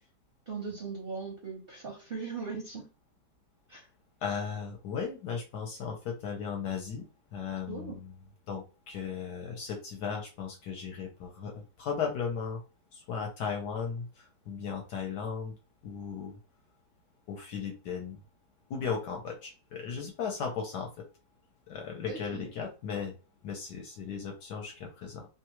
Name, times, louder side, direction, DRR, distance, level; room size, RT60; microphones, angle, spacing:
voice 1, 0.5-2.9 3.7-3.9 7.7-8.0 22.1-22.5, right 5 dB, 55° right, 0.6 m, -39 dB
voice 2, 4.2-7.0 7.3-8.1 8.5-12.6 12.9-15.5 15.8-16.3 17.3-18.2 18.7-20.9 21.7-23.1 23.4-25.3, left 6 dB, 70° left, 1.2 m, -36 dB
3.1 x 2.3 x 2.9 m
omnidirectional pair, 2.0 m